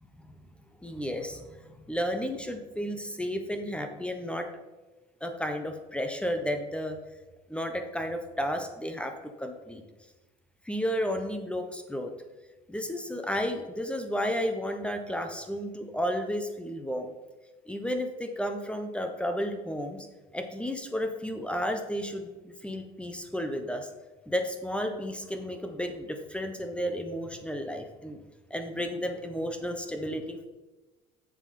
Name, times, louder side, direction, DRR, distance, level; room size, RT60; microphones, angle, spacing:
voice 1, 0.8-1.6 1.9-4.5 5.2-7.0 7.5-9.8 10.6-12.1 12.7-17.1 17.7-20.1 20.3-23.9 24.3-28.2 28.5-30.4, equal, 5° left, 6 dB, 1.0 m, -32 dB
7.4 x 7.0 x 4.3 m, 1.2 s
supercardioid pair, 90°, 18 cm